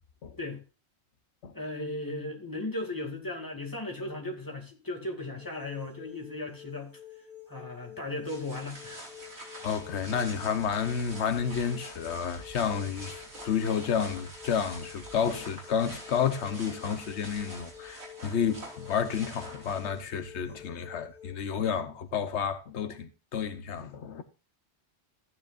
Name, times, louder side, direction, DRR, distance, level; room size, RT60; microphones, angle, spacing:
voice 1, 1.5-6.9 7.5-9.1, left 2 dB, 20° left, 2.4 m, -36 dB
sound 1, 5.4-21.3, left 10 dB, 15° right, 3.6 m, -49 dB
sound 2, 8.2-20.2, right 1 dB, 75° right, 3.7 m, -46 dB
voice 2, 9.6-24.2, left 7 dB, 85° left, 1.2 m, -31 dB
14.5 x 9.7 x 2.5 m
omnidirectional pair, 1.1 m